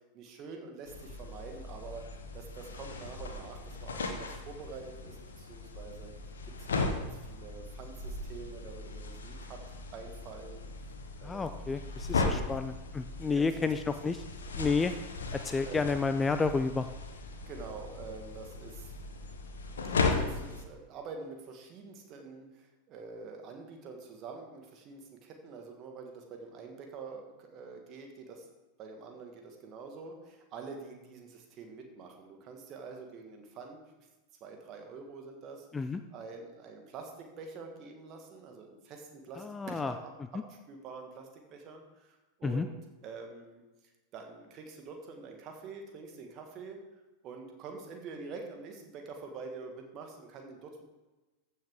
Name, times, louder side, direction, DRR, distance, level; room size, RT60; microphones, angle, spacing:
voice 1, 0.2-0.9 1.2-2.0 2.6-5.1 5.5-6.1 6.7-7.1 7.4-7.9 8.3-9.6 9.9-10.6 11.2-11.6 12.2-12.4 13.3-13.7 15.6-15.8 17.5-18.7 19.9-22.4 22.9-25.0 25.4-27.2 27.5-28.1 28.8-29.3 29.6-30.1 30.5-31.3 31.6-33.8 34.4-35.6 36.1-37.1 37.4-39.0 39.3-40.1 40.7-41.2 41.5-41.8 42.4-43.6 44.1-46.8 47.2-50.8, right 4 dB, 35° right, 3 dB, 1.9 m, -46 dB
sound 1, 0.8-20.6, left 3 dB, 65° left, 1.2 m, -37 dB
voice 2, 11.2-14.2 14.5-14.9 15.3-16.9 35.7-36.0 39.4-39.9 42.4-42.7, left 4 dB, 15° left, 9 dB, 0.4 m, -31 dB
15.0 x 6.5 x 3.8 m, 1.1 s
figure-of-eight pair, 90°, 0 cm